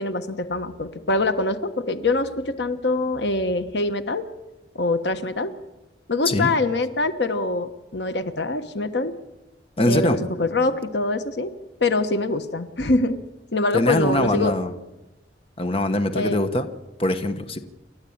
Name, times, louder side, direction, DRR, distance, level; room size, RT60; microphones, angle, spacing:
voice 1, 0.0-4.3 4.7-5.5 6.1-9.2 9.8-11.5 11.8-13.2 13.5-14.6 16.1-16.4, left 2 dB, 75° left, 9 dB, 1.2 m, -24 dB
voice 2, 9.8-10.2 13.7-14.7 15.6-16.7 17.0-17.6, left 1 dB, 35° left, 8 dB, 1.2 m, -22 dB
28.5 x 13.0 x 8.7 m, 1.0 s
head